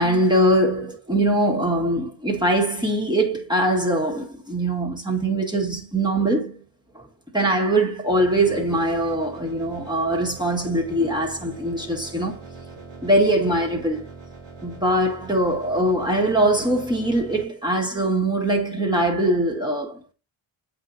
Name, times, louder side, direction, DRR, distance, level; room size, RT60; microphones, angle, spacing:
voice 1, 0.0-6.6 6.9-7.0 7.3-12.4 13.0-14.1 14.6-20.0, right 1 dB, 10° right, 1.6 m, -22 dB
sound 1, 8.1-17.4, right 4 dB, 85° right, 2.8 m, -42 dB
8.1 x 4.7 x 2.7 m
cardioid pair, 55°, 50 cm